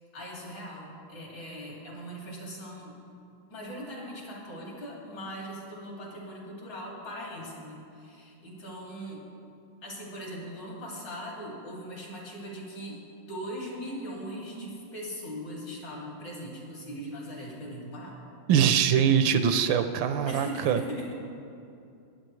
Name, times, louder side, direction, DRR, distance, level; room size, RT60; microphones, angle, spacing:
voice 1, 0.0-3.0 3.5-9.2 9.8-13.0 13.3-18.2 20.3-21.1, equal, 65° left, -4 dB, 3.3 m, -40 dB
voice 2, 18.5-20.8, right 8 dB, 75° right, 9 dB, 1.3 m, -23 dB
21.0 x 8.8 x 3.2 m, 2.6 s
omnidirectional pair, 2.2 m